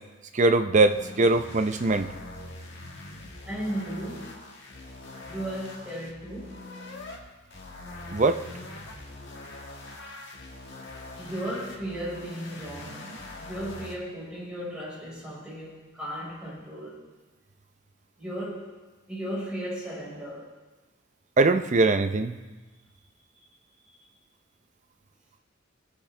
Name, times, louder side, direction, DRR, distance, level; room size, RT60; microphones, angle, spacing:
voice 1, 0.3-2.1 8.1-8.4 21.4-22.4, right 3 dB, 40° right, 9 dB, 0.6 m, -21 dB
sound 1, 0.8-7.2 7.5-14.0, left 2 dB, 60° left, 1.7 m, -43 dB
voice 2, 3.4-4.3 5.2-6.6 11.1-17.0 18.2-18.7 19.1-20.5 23.8-24.0, right 1 dB, 5° right, -8 dB, 4.9 m, -36 dB
21.5 x 8.0 x 3.3 m, 1.2 s
head